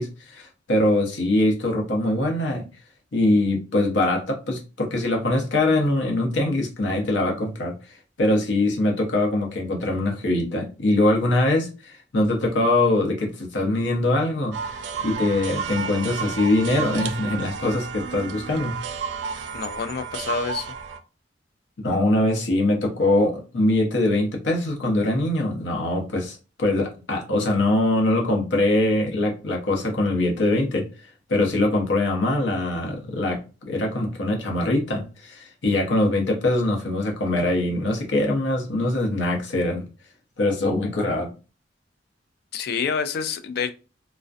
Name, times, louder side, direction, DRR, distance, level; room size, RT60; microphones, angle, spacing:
voice 1, 0.0-2.6 3.1-18.8 21.8-33.4 33.7-39.9 40.4-41.3, left 1 dB, 85° left, 0.7 m, -23 dB
sound 1, 14.5-21.0, right 6 dB, 65° right, 0.3 m, -32 dB
voice 2, 19.5-20.7 42.5-43.7, left 6 dB, 60° left, 0.3 m, -27 dB
2.4 x 2.1 x 2.5 m
head